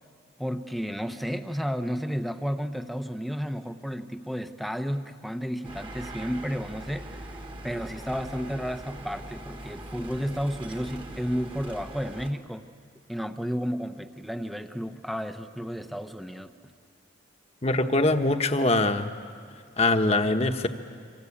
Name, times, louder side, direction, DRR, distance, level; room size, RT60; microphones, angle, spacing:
voice 1, 0.4-7.3 7.6-12.7 13.1-16.5, equal, ahead, 7 dB, 0.9 m, -32 dB
sound 1, 5.6-12.3, right 1 dB, 25° right, 1.7 m, -41 dB
voice 2, 17.6-19.1 19.8-20.7, left 2 dB, 35° left, 6 dB, 1.2 m, -23 dB
27.5 x 25.5 x 8.6 m, 2.1 s
head